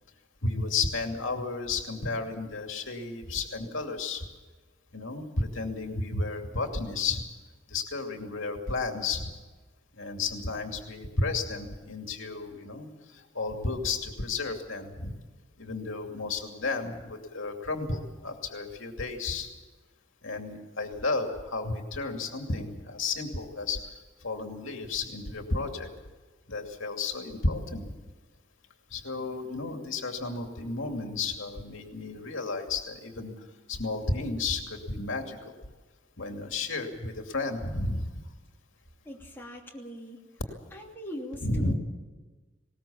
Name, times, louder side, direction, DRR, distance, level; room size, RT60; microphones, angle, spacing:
voice 1, 0.4-4.2 4.9-7.2 7.7-9.3 9.9-15.1 15.6-19.5 20.2-23.8 24.2-25.9 26.5-27.8 28.9-35.6 36.2-38.2 41.4-41.7, left 3 dB, 70° left, 3 dB, 2.6 m, -32 dB
voice 2, 39.0-40.2 40.7-41.7, equal, 10° left, -2 dB, 2.9 m, -41 dB
20.5 x 19.0 x 7.2 m, 1.3 s
head